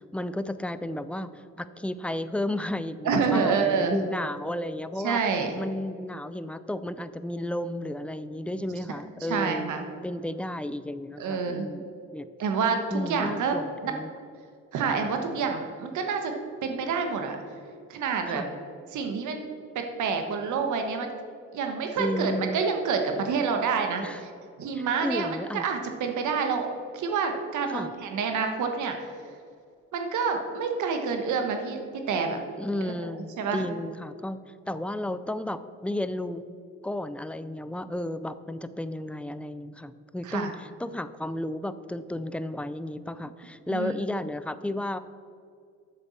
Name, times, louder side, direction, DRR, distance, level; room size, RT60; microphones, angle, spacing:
voice 1, 0.1-5.2 5.6-9.8 10.0-11.8 12.1-12.3 12.9-14.1 18.3-18.5 22.0-22.6 24.0-24.2 24.7-25.6 27.7-27.9 32.6-34.4 34.7-36.4 36.8-45.0, left 1 dB, 5° left, 13 dB, 0.4 m, -33 dB
voice 2, 3.0-4.0 5.0-5.5 9.3-9.8 11.2-11.7 12.4-13.5 13.8-13.9 14.7-16.3 16.6-17.4 17.9-18.4 18.9-19.4 19.7-21.1 21.5-24.3 24.6-26.7 26.9-28.9 29.9-32.4 32.8-33.1 33.4-33.6 40.2-40.5 43.7-43.9, right 5 dB, 75° right, 4 dB, 1.4 m, -28 dB
8.3 x 6.9 x 7.2 m, 2.3 s
cardioid pair, 90°, 30 cm